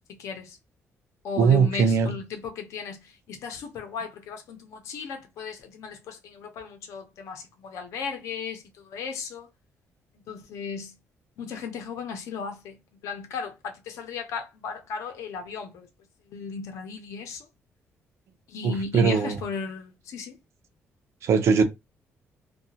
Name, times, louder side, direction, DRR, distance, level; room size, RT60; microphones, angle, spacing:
voice 1, 0.1-0.6 1.2-9.5 10.1-11.0 11.4-15.9 16.3-17.5 18.5-20.4, left 5 dB, 80° left, 0.7 m, -36 dB
voice 2, 1.4-2.1 18.6-19.4 21.2-21.6, right 6 dB, 65° right, 0.6 m, -20 dB
2.7 x 2.3 x 2.8 m
cardioid pair, 120°, 5 cm